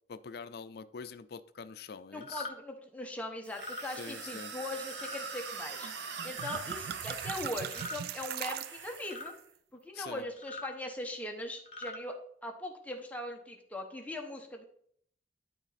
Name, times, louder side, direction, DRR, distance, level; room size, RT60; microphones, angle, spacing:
voice 1, 0.1-2.5 3.8-4.5 9.9-10.2, left 5 dB, 60° left, 12 dB, 0.5 m, -45 dB
voice 2, 2.1-5.9 6.2-9.3 9.7-14.6, left 1 dB, 10° left, 2 dB, 1.1 m, -40 dB
sound 1, 2.2-2.5 3.5-3.8 4.9-5.2 6.3-6.6 7.7-8.0 9.0-9.3 10.4-10.7 11.6-12.0, left 2 dB, 35° left, 1.2 m, -42 dB
sound 2, 3.4-9.4, right 5 dB, 80° right, 0.8 m, -43 dB
sound 3, 5.8-5.9 6.2-9.2, right 9 dB, 60° right, 0.3 m, -40 dB
11.5 x 4.1 x 4.1 m, 0.64 s
head